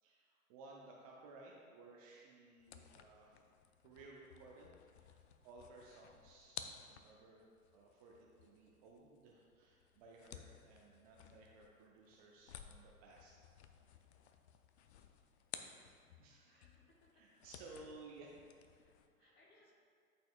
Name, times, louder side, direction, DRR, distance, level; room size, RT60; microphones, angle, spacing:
voice 1, 0.0-3.4 3.8-13.3 16.2-16.7 17.1-18.3 19.2-19.3, right 3 dB, 25° right, -2 dB, 0.5 m, -58 dB
sound 1, 2.6-16.3 16.6-19.1, left 8 dB, 50° left, 0.5 m, -56 dB
voice 2, 15.6-16.0 16.4-17.3 17.6-17.9 18.2-18.3 18.7-19.7, left 2 dB, 25° left, -2 dB, 1.1 m, -71 dB
11.5 x 4.3 x 2.4 m, 2.1 s
figure-of-eight pair, 105°, 43 cm